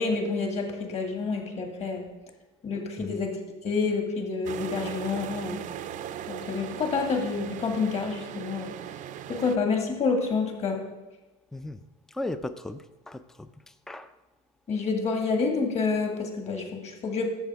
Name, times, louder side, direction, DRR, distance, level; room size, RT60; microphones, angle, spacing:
voice 1, 0.0-2.1 2.6-5.6 6.3-8.7 9.3-10.8 14.7-17.3, left 4 dB, 35° left, 3 dB, 1.9 m, -28 dB
sound 1, 4.4-9.6, right 10 dB, 45° right, 0.6 m, -38 dB
voice 2, 11.5-11.8 12.1-14.1, left 2 dB, 5° left, 11 dB, 0.4 m, -37 dB
12.0 x 7.3 x 3.5 m, 1.1 s
hypercardioid pair, 90°, 18 cm